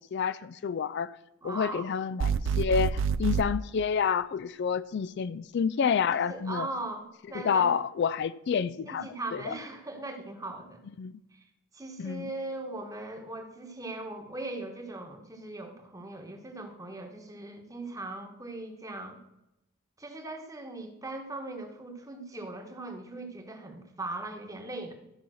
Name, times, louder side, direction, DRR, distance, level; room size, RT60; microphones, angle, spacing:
voice 1, 0.1-1.1 1.4-6.7 7.3-9.6 11.0-11.1 12.0-12.3, left 6 dB, 50° left, 16 dB, 0.3 m, -29 dB
voice 2, 1.4-1.9 6.3-7.7 8.9-10.8 11.3-11.4 11.7-19.2 20.0-24.9, right 2 dB, 15° right, 5 dB, 1.2 m, -39 dB
sound 1, 2.2-3.5, right 6 dB, 60° right, 0.4 m, -27 dB
13.5 x 5.5 x 6.3 m, 0.89 s
head